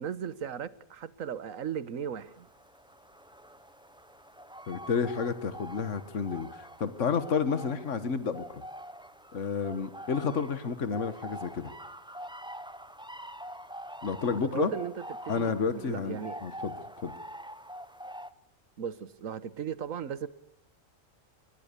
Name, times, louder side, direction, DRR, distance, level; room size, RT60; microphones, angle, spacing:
voice 1, 0.0-2.5 14.5-14.9 15.2-16.4 18.8-20.3, right 8 dB, 85° right, 1.5 m, -36 dB
sound 1, 2.2-18.3, equal, 5° right, 0.7 m, -45 dB
voice 2, 4.7-8.6 9.3-11.7 14.0-14.7 15.3-17.1, left 6 dB, 65° left, 1.8 m, -31 dB
23.5 x 20.5 x 6.9 m
omnidirectional pair, 1.4 m